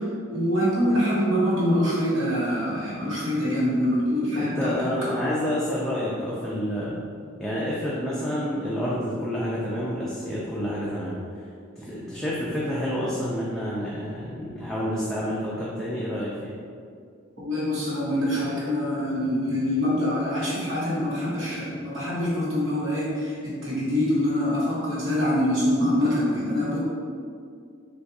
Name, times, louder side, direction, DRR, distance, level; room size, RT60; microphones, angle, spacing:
voice 1, 0.0-4.7 5.1-5.2 17.4-26.8, equal, 65° right, -8 dB, 1.5 m, -25 dB
voice 2, 4.3-7.0 7.4-11.1 11.8-16.6 17.4-17.5, equal, ahead, -8 dB, 0.5 m, -29 dB
3.6 x 2.6 x 4.6 m, 2.2 s
head